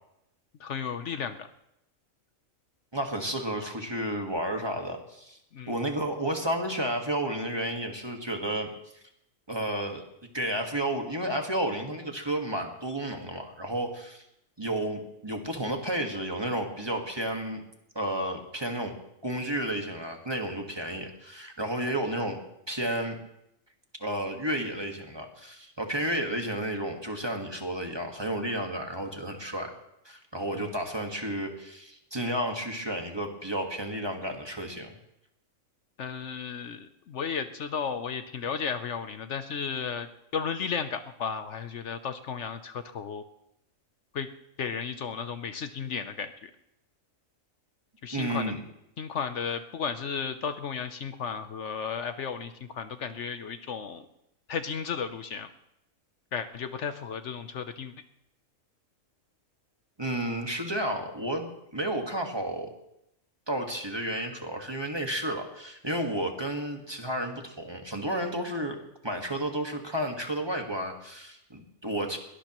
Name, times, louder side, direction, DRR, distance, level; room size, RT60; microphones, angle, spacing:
voice 1, 0.6-1.5 5.5-5.8 30.5-30.8 36.0-43.2 44.1-44.3 44.6-46.5 48.0-48.5 49.0-54.0 54.5-55.5 56.3-57.9, left 6 dB, 65° left, 9 dB, 1.0 m, -34 dB
voice 2, 2.9-5.4 5.7-8.7 9.5-10.0 10.3-14.2 14.6-17.6 17.9-18.9 19.2-22.4 22.7-23.2 24.0-29.7 30.0-34.9 48.1-48.6 60.0-62.7 63.5-72.2, right 1 dB, 20° right, 3 dB, 1.6 m, -32 dB
22.0 x 18.0 x 3.0 m, 0.82 s
omnidirectional pair, 1.4 m